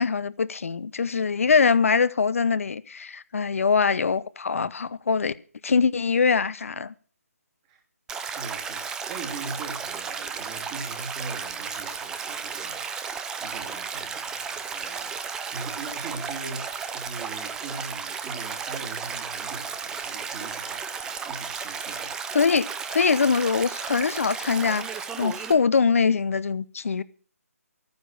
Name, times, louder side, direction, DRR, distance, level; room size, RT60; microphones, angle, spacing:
voice 1, 0.0-5.3 5.6-6.9 22.3-27.0, left 5 dB, 60° left, 0.9 m, -23 dB
Stream, 8.1-25.5, right 6 dB, 5° right, 0.7 m, -34 dB
voice 2, 8.2-12.8 13.4-15.2 15.5-22.2, right 3 dB, 25° right, 2.5 m, -40 dB
14.0 x 9.7 x 6.3 m
figure-of-eight pair, 155°, 8 cm